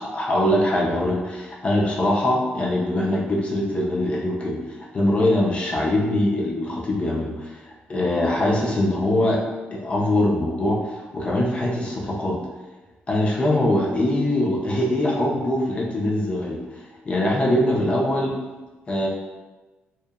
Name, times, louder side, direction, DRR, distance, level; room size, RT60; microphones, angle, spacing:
voice 1, 0.0-4.6 4.9-9.4 9.7-10.8 11.1-12.4 13.1-16.6 17.1-18.3 18.9-19.1, left 1 dB, 30° left, -3 dB, 0.4 m, -22 dB
2.8 x 2.1 x 2.2 m, 1.2 s
cardioid pair, 130°, 4 cm